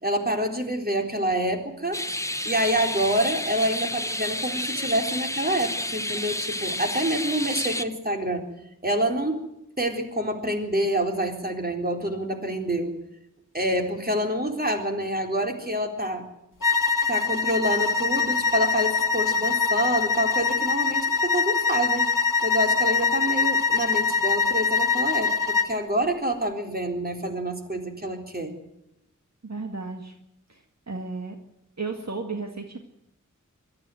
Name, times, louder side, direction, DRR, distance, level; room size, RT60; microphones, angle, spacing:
voice 1, 0.0-2.0 2.4-8.4 8.8-9.5 9.8-13.0 13.5-16.3 17.1-22.1 22.4-28.6, right 1 dB, 30° right, 3 dB, 4.0 m, -27 dB
sound 1, 1.9-7.8, left 1 dB, 10° left, 1.0 m, -30 dB
sound 2, 16.6-25.8, left 5 dB, 80° left, 1.4 m, -23 dB
voice 2, 29.4-30.1 30.5-31.4 31.8-32.8, right 3 dB, 55° right, 4 dB, 2.0 m, -34 dB
22.5 x 13.5 x 9.3 m, 0.85 s
wide cardioid pair, 65°, 32 cm